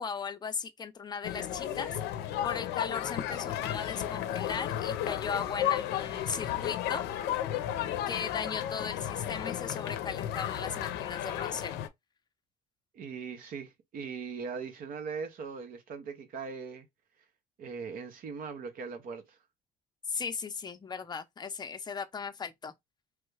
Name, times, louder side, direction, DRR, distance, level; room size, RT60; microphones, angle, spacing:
voice 1, 0.0-2.0 2.4-7.0 8.1-11.8 20.1-22.7, left 6 dB, 25° left, 0.6 m, -37 dB
sound 1, 1.2-11.9, left 11 dB, 85° left, 0.5 m, -33 dB
voice 2, 12.9-16.9 17.6-19.4, right 5 dB, 55° right, 0.7 m, -40 dB
3.1 x 2.3 x 3.2 m
cardioid pair, 110°, 17 cm